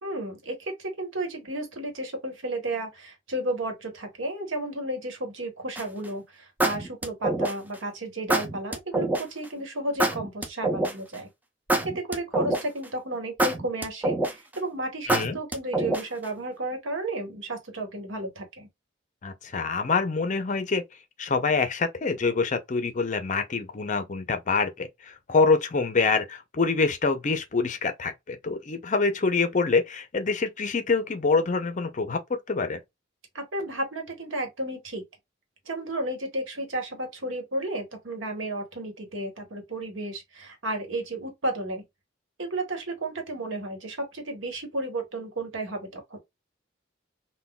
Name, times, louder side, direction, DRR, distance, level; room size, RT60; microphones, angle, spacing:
voice 1, 0.0-11.3 11.8-18.7 33.3-35.0 35.7-41.8 42.4-46.2, right 1 dB, 80° right, 1.1 m, -33 dB
sound 1, 5.8-6.1 6.6-7.8 8.3-9.2 10.0-11.2 11.7-12.8 13.4-14.5 15.1-16.2, right 2 dB, 10° right, 0.5 m, -25 dB
voice 2, 19.2-20.8 21.2-32.8, left 4 dB, 40° left, 0.5 m, -26 dB
3.7 x 2.2 x 2.2 m
head